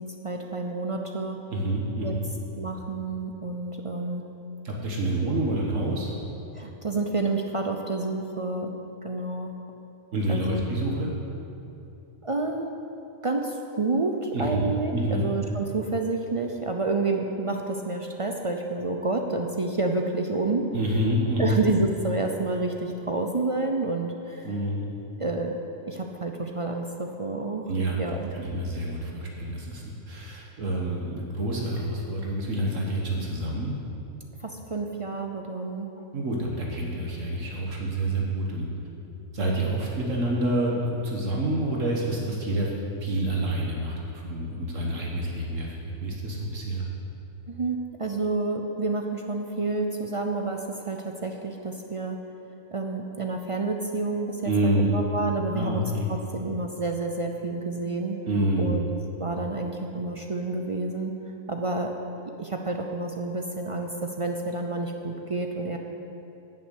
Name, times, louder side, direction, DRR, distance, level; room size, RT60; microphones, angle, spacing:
voice 1, 0.0-1.4 2.0-2.1 2.6-4.3 6.5-8.7 9.0-9.5 10.3-10.6 12.2-12.7 13.2-20.7 21.4-24.5 25.2-25.6 25.9-27.6 28.0-28.3 34.4-36.0 47.5-52.2 52.7-58.2 58.6-58.9 59.2-61.1 61.5-61.9 62.4-65.8, right 3 dB, 40° right, 3 dB, 0.4 m, -29 dB
voice 2, 1.5-2.3 4.7-6.1 10.1-11.1 14.3-15.3 20.7-21.6 24.4-24.9 27.7-33.7 36.1-38.7 39.3-42.7 43.0-44.0 44.2-46.8 54.4-54.9 55.5-56.1 58.3-58.7, right 1 dB, 70° right, -2 dB, 1.7 m, -28 dB
11.0 x 6.4 x 8.2 m, 2.9 s
omnidirectional pair, 1.4 m